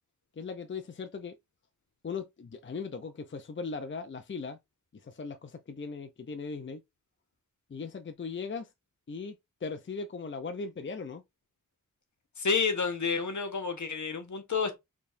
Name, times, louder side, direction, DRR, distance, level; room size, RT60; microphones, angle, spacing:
voice 1, 0.4-1.3 2.0-4.6 5.0-6.8 7.7-8.7 9.1-9.4 9.6-11.2, left 4 dB, 40° left, 0.6 m, -38 dB
voice 2, 12.4-14.8, left 5 dB, 65° left, 1.2 m, -30 dB
4.6 x 3.4 x 2.6 m
wide cardioid pair, 105°, 32 cm